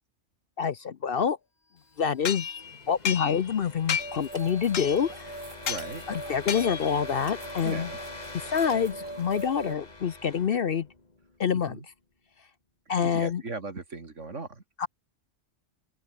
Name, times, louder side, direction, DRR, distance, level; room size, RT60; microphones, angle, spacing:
voice 1, 0.6-1.4 2.0-2.6 2.9-5.3 6.1-7.9 8.4-10.9 11.4-11.8 12.9-13.4 14.8-14.9, left 7 dB, 55° left, 0.8 m, -27 dB
sound 1, 1.9-11.7, left 2 dB, 30° left, 2.4 m, -45 dB
sound 2, 2.2-3.6 3.9-4.3 4.7-5.2 5.7-5.9 6.5-7.0, left 7 dB, 80° left, 1.7 m, -32 dB
sound 3, 4.0-9.8, right 2 dB, 90° right, 6.6 m, -41 dB
voice 2, 5.7-6.0 7.6-8.0 11.7-11.8 13.0-14.6, right 3 dB, 70° right, 3.2 m, -38 dB
open air
omnidirectional pair, 1.3 m